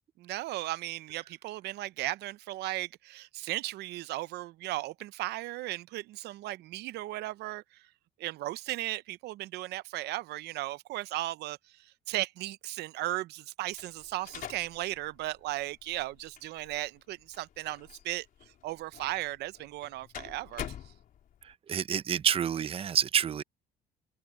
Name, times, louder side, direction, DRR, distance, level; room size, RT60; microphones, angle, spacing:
voice 1, 0.2-7.9 8.2-18.3 18.6-20.9, right 17 dB, 80° right, 0.6 m, -36 dB
sound 1, 13.7-21.5, left 10 dB, 55° left, 3.8 m, -47 dB
voice 2, 21.4-23.4, right 8 dB, 35° right, 0.6 m, -28 dB
open air
cardioid pair, 110°, 17 cm